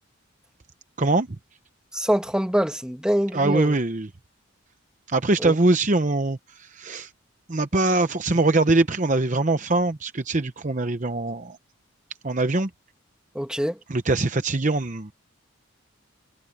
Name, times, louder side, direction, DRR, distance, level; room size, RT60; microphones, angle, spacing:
voice 1, 1.9-3.8 5.4-5.5 13.3-13.8, equal, 5° right, 2.0 m, -24 dB
voice 2, 3.3-4.1 5.1-7.1 7.5-11.6 12.2-12.7 13.9-15.1, right 2 dB, 35° right, 0.8 m, -22 dB
head